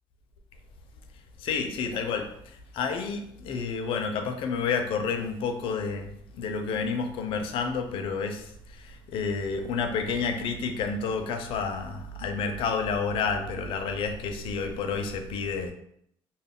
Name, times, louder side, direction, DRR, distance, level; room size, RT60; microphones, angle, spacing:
voice 1, 1.4-2.3 2.7-8.5 8.7-15.7, left 5 dB, 65° left, 6 dB, 0.4 m, -30 dB
2.3 x 2.0 x 3.5 m, 0.71 s
cardioid pair, 115°, 10 cm